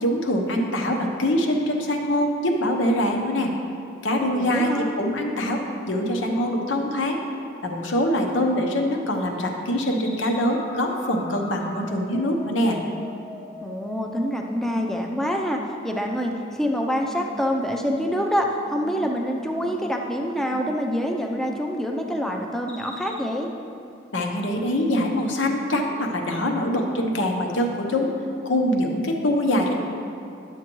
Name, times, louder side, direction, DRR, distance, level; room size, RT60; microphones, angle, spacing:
voice 1, 0.0-3.5 4.0-7.2 7.6-12.8 24.1-28.1 28.4-29.7, left 1 dB, 85° left, 2 dB, 0.9 m, -24 dB
voice 2, 4.3-5.0 13.6-23.5, equal, ahead, 1 dB, 0.5 m, -26 dB
sound 1, 9.8-14.7 15.1-15.6 15.9-16.4 16.8-17.2 17.6-18.2 18.5-19.0 19.3-19.8 20.1-20.6 21.0-21.5 21.9-22.3 22.7-23.2, left 1 dB, 30° left, 1.0 m, -42 dB
11.0 x 7.4 x 3.1 m, 2.6 s
head